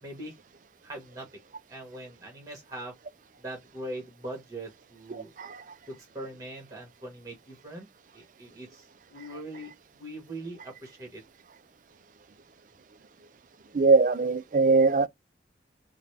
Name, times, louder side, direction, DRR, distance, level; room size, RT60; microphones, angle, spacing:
voice 1, 0.0-0.3 0.8-1.3 1.7-2.9 3.4-5.3 5.9-7.9 8.1-11.2, right 1 dB, 20° right, 1.4 m, -41 dB
voice 2, 13.7-15.1, right 3 dB, 45° right, 0.4 m, -21 dB
3.9 x 2.2 x 3.3 m
head